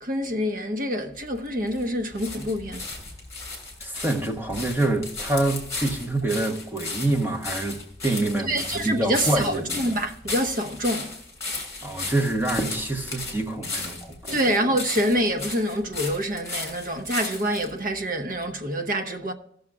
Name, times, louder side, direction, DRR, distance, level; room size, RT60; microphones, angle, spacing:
voice 1, 0.0-2.8 8.5-11.2 14.3-19.3, equal, 45° right, 0.9 m, -26 dB
sound 1, 1.1-17.7 18.4-18.5, left 3 dB, 15° left, 2.8 m, -35 dB
voice 2, 3.8-7.8 8.0-9.8 11.8-14.4, right 2 dB, 10° right, 1.1 m, -26 dB
16.0 x 6.4 x 3.6 m
head